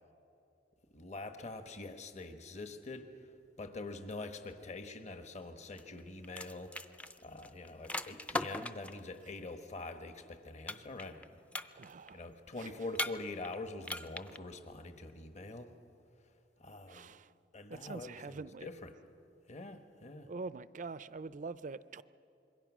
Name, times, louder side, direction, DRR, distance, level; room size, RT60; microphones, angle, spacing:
voice 1, 0.9-3.3 3.6-6.7 7.2-11.4 12.1-15.7 16.6-17.2 17.5-18.9 19.5-20.3, left 2 dB, 40° left, 1.2 m, -45 dB
sound 1, 5.8-6.0 6.2-9.0 10.7-11.2 11.5-12.1 12.9-13.5 13.8-14.4, left 1 dB, 10° left, 0.5 m, -39 dB
voice 2, 11.7-12.3 12.6-12.7 16.9-17.3 17.7-18.7 20.3-22.0, right 4 dB, 45° right, 0.5 m, -44 dB
26.5 x 22.0 x 6.2 m
head